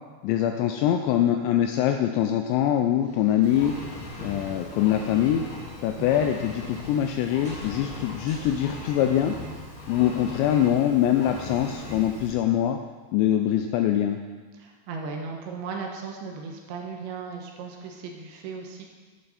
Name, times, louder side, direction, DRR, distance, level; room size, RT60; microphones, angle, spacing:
voice 1, 0.2-3.7 4.2-5.4 5.8-9.4 9.9-12.8 13.1-14.2, left 11 dB, 85° left, 5 dB, 2.6 m, -23 dB
sound 1, 3.0-8.9, equal, 25° right, 1.9 m, -49 dB
Engine, 3.4-12.3, left 2 dB, 60° left, 4.0 m, -39 dB
voice 2, 14.5-18.9, right 5 dB, 75° right, 1 dB, 3.1 m, -36 dB
11.0 x 9.8 x 4.1 m, 1.4 s
omnidirectional pair, 5.5 m